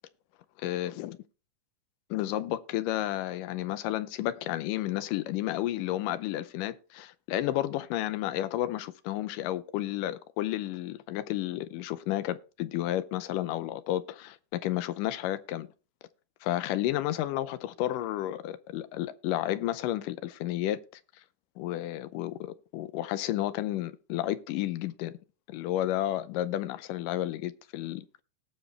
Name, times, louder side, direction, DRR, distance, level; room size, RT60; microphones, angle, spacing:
voice 1, 0.6-1.2 2.1-15.7 16.4-20.8 21.6-25.2 25.5-28.2, left 14 dB, 85° left, 2.3 m, -32 dB
18.0 x 6.5 x 3.3 m
omnidirectional pair, 3.8 m